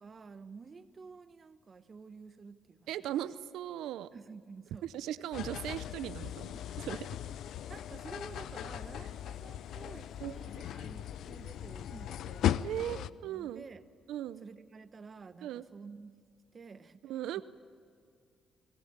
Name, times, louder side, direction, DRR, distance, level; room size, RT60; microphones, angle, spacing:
voice 1, 0.0-2.9 4.1-4.9 7.7-13.8 14.4-16.2 16.5-17.1 17.4-17.5, right 5 dB, 40° right, 12 dB, 1.0 m, -51 dB
voice 2, 2.9-4.1 4.8-6.5 6.8-7.1 10.2-10.3 12.6-13.6 14.1-14.5 15.4-15.6 17.0-17.4, right 12 dB, 85° right, 14 dB, 0.6 m, -38 dB
sound 1, 5.3-13.1, left 11 dB, 75° left, 0.6 m, -38 dB
23.5 x 19.0 x 8.8 m, 2.3 s
cardioid pair, 90°, 0 cm